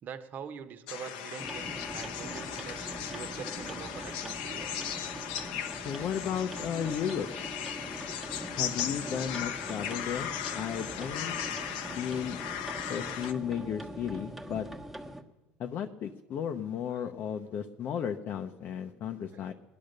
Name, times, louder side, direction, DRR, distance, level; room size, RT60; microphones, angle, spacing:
voice 1, 0.0-4.7 11.1-11.3 16.9-17.0 19.3-19.5, right 7 dB, 45° right, 9 dB, 1.2 m, -44 dB
sound 1, 0.9-13.3, left 9 dB, 90° left, 1.0 m, -37 dB
sound 2, 1.4-15.2, right 1 dB, 5° right, 1.4 m, -42 dB
voice 2, 5.8-7.3 8.5-11.4 11.9-12.4 12.9-14.7 15.6-19.5, left 8 dB, 45° left, 5 dB, 0.8 m, -34 dB
19.0 x 10.5 x 6.7 m, 1.1 s
supercardioid pair, 120°, 4 cm